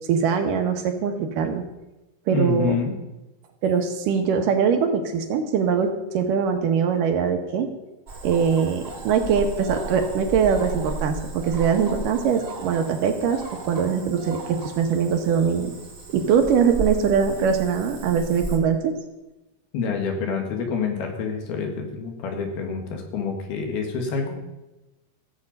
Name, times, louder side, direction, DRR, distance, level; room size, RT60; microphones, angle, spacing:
voice 1, 0.1-1.6 2.3-2.8 3.6-7.7 8.2-13.4 13.7-15.7 16.1-19.0, right 6 dB, 70° right, 6 dB, 2.4 m, -22 dB
voice 2, 2.3-2.9 19.7-24.4, left 5 dB, 80° left, 2 dB, 3.7 m, -27 dB
Cricket / Frog, 8.1-18.6, right 3 dB, 35° right, 1.4 m, -35 dB
16.5 x 7.9 x 5.4 m, 1.0 s
omnidirectional pair, 4.5 m